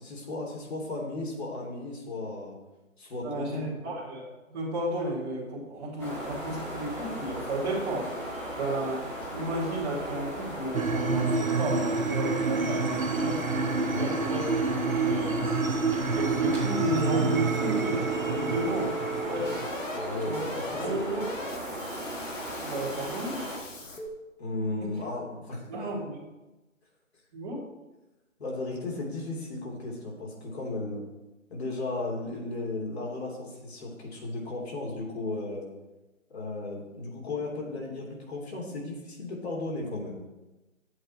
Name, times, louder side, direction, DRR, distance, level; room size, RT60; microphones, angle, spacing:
voice 1, 0.0-2.6 3.0-3.7 13.9-14.2 19.9-21.0 24.4-25.7 28.4-31.0 31.5-35.7 36.3-40.1, left 2 dB, 50° left, -2 dB, 3.2 m, -35 dB
voice 2, 3.2-8.1 8.6-13.4 13.9-14.4 15.0-15.5 16.1-19.7 20.2-20.4 20.8-21.2 22.6-23.5 25.7-26.2 27.3-27.6, right 1 dB, 20° right, -5 dB, 2.5 m, -33 dB
sound 1, 6.0-23.6, equal, 5° left, 1.0 m, -36 dB
sound 2, 10.7-19.7, right 4 dB, 85° right, 1.0 m, -28 dB
sound 3, 17.0-24.1, right 3 dB, 65° left, 1.9 m, -38 dB
10.0 x 8.1 x 4.3 m, 1.1 s
figure-of-eight pair, 150°, 40 cm